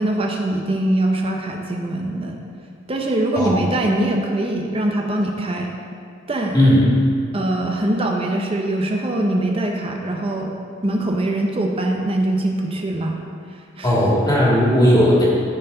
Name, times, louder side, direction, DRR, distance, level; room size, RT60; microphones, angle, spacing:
voice 1, 0.0-2.4 2.9-5.7 6.3-6.5 7.3-10.5 10.8-13.2 13.8-14.0, right 1 dB, 30° right, 1 dB, 0.7 m, -22 dB
voice 2, 6.5-6.9 13.8-15.3, equal, 20° left, -6 dB, 1.9 m, -16 dB
13.0 x 4.5 x 3.8 m, 2.2 s
head